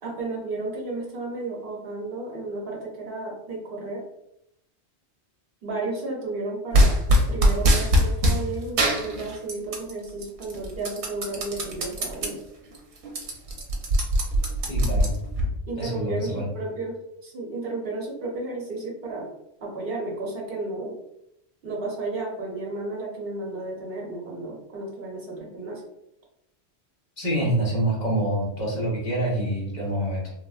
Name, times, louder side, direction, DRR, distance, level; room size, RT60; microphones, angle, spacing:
voice 1, 0.0-4.0 5.6-6.9 7.3-12.4 15.7-17.0 17.2-19.3 19.6-21.0 21.6-25.8, right 2 dB, 60° right, -2 dB, 1.0 m, -33 dB
sound 1, 6.7-8.4 8.8-9.9 10.2-12.3 12.7-12.8 13.0-15.5, equal, 85° right, 0.9 m, -21 dB
voice 2, 14.7-15.1 15.8-16.5 27.2-30.3, right 1 dB, 45° left, -5 dB, 1.0 m, -26 dB
3.2 x 2.1 x 2.3 m, 0.81 s
omnidirectional pair, 1.1 m